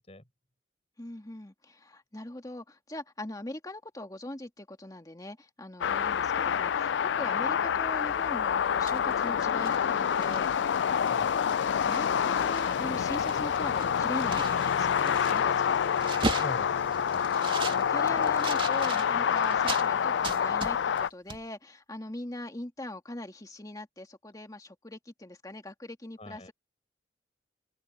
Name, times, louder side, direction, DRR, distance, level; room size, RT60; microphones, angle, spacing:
voice 1, 1.0-11.4 11.8-16.1 17.7-26.5, left 1 dB, 20° left, 2.1 m, -41 dB
sound 1, 5.8-21.1, left 7 dB, 85° left, 0.4 m, -27 dB
sound 2, 8.6-10.6 11.1-11.2 11.5-12.8 13.0-19.9 20.2-21.0 21.3-21.4, right 3 dB, 30° right, 2.3 m, -38 dB
voice 2, 11.1-11.5 16.2-17.3 26.2-26.5, left 1 dB, 35° left, 5.8 m, -44 dB
open air
head